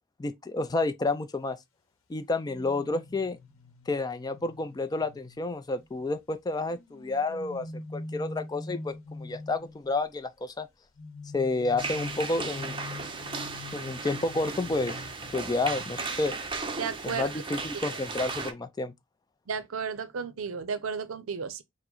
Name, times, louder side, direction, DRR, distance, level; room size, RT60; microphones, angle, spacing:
voice 1, 0.2-1.6 2.1-3.4 3.9-7.7 7.9-10.7 11.3-12.8 13.7-15.0 15.3-16.3 17.0-18.9, left 3 dB, 20° left, 0.3 m, -30 dB
sound 1, 2.4-6.1 6.7-9.9 11.0-16.2 16.5-16.7, left 2 dB, 80° left, 0.8 m, -44 dB
sound 2, 11.8-18.5, right 4 dB, 25° right, 0.6 m, -36 dB
voice 2, 16.8-17.3 17.7-17.8 19.5-21.6, right 5 dB, 85° right, 0.5 m, -33 dB
4.6 x 2.1 x 3.8 m
head